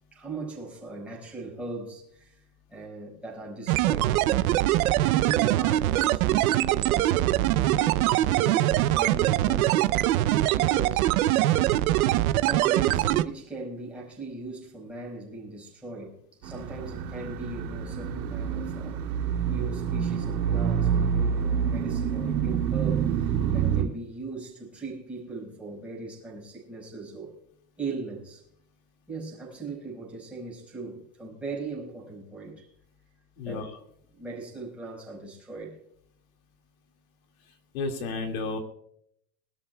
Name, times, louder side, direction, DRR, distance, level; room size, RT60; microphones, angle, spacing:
voice 1, 0.1-2.4 2.7-4.7 5.1-10.1 10.5-11.1 12.2-19.0 19.5-27.4 27.8-28.4 29.1-32.7 33.4-33.7 34.1-35.8, right 3 dB, ahead, 5.0 m, -39 dB
sound 1, 3.7-13.2, right 15 dB, 60° right, 0.7 m, -23 dB
sound 2, 16.4-23.8, right 7 dB, 80° right, 3.4 m, -27 dB
voice 2, 33.4-33.7 37.7-38.6, left 3 dB, 55° left, 2.2 m, -31 dB
24.0 x 13.0 x 2.3 m
supercardioid pair, 175°, 49 cm